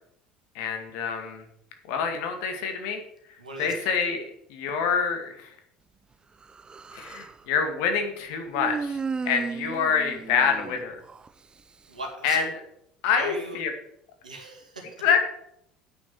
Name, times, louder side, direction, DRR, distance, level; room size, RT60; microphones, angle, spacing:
voice 1, 0.5-1.4 1.9-3.0 3.6-5.5 6.9-9.0 9.2-11.0 12.2-12.4 13.0-13.7 15.0-15.2, left 6 dB, 60° left, 5 dB, 1.9 m, -26 dB
voice 2, 3.4-3.9 11.9-12.5 13.1-13.6 14.2-14.9, right 2 dB, 85° right, 2 dB, 1.9 m, -38 dB
Human voice, 6.4-7.4 8.5-11.3, right 5 dB, 20° right, 0.5 m, -34 dB
8.4 x 6.5 x 7.3 m, 0.74 s
figure-of-eight pair, 65°, 4 cm